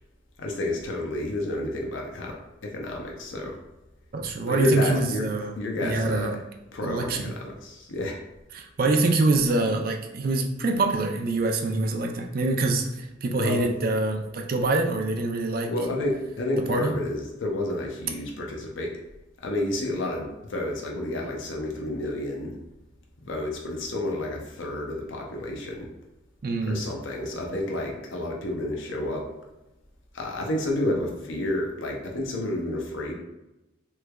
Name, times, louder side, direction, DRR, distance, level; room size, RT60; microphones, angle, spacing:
voice 1, 0.4-3.6 4.5-5.3 5.6-6.3 6.7-8.2 13.4-13.7 15.7-19.0 19.4-22.6 23.2-25.9 26.7-29.3 30.1-33.2, left 1 dB, 80° left, 0 dB, 0.6 m, -30 dB
voice 2, 4.1-5.5 5.8-6.4 6.8-7.3 8.5-15.7 16.7-16.9 26.4-26.8, right 2 dB, 50° right, 3 dB, 0.4 m, -25 dB
3.4 x 3.1 x 2.2 m, 0.94 s
head